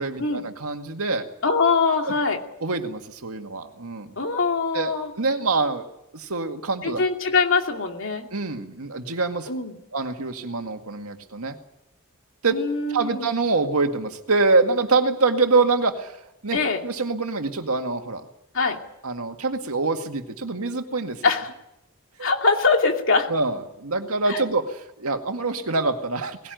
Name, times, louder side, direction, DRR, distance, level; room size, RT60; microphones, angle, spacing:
voice 1, 0.0-1.3 2.6-4.1 4.7-5.9 6.1-7.0 8.3-9.5 9.9-11.6 12.4-12.6 12.9-18.2 19.0-21.2 22.2-22.3 23.3-26.5, right 3 dB, 85° right, 5 dB, 2.0 m, -25 dB
voice 2, 1.4-2.4 4.2-5.1 6.8-8.3 9.5-9.7 12.5-13.3 16.5-16.8 18.5-18.8 21.2-21.5 22.2-23.3 24.3-24.4, left 4 dB, 65° left, 3 dB, 2.7 m, -22 dB
19.5 x 17.0 x 9.3 m, 0.85 s
head